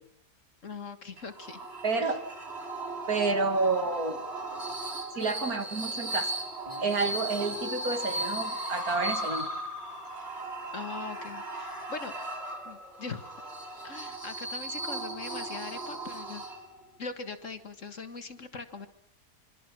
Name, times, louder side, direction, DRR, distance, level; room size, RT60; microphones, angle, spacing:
voice 1, 0.6-1.6 2.0-2.2 10.7-12.2 12.6-13.4 13.8-16.5 17.0-18.9, left 4 dB, 50° left, 9 dB, 2.0 m, -41 dB
sound 1, 1.2-16.9, right 2 dB, 40° right, 3.4 m, -38 dB
voice 2, 1.8-2.2 3.1-4.2 5.1-6.3 6.8-9.5, right 3 dB, 60° right, 7 dB, 2.7 m, -29 dB
sound 2, 4.5-13.4, left 2 dB, 20° left, 2.6 m, -40 dB
26.0 x 24.5 x 6.2 m, 0.66 s
omnidirectional pair, 1.7 m